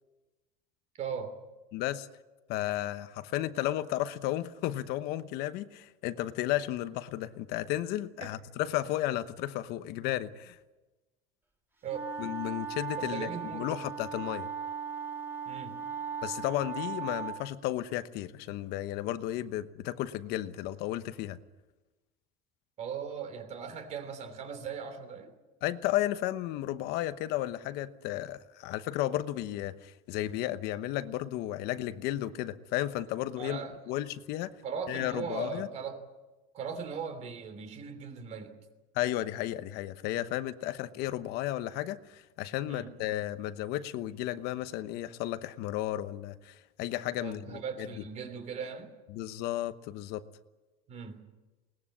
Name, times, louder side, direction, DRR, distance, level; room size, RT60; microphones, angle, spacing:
voice 1, 1.0-1.4 8.2-8.3 11.8-12.1 13.0-13.8 15.4-15.8 22.8-25.3 33.4-33.8 34.6-36.0 36.5-38.6 42.6-42.9 47.2-49.0 50.9-51.3, right 6 dB, 40° right, 9 dB, 3.1 m, -39 dB
voice 2, 1.7-2.1 2.5-10.6 12.2-14.5 16.2-21.4 25.6-34.5 34.9-35.7 38.9-47.9 49.1-50.2, left 14 dB, 60° left, 12 dB, 1.0 m, -33 dB
sound 1, 11.9-17.4, right 6 dB, 10° right, 3.3 m, -38 dB
21.5 x 20.0 x 8.6 m, 1.1 s
cardioid pair, 150°, 18 cm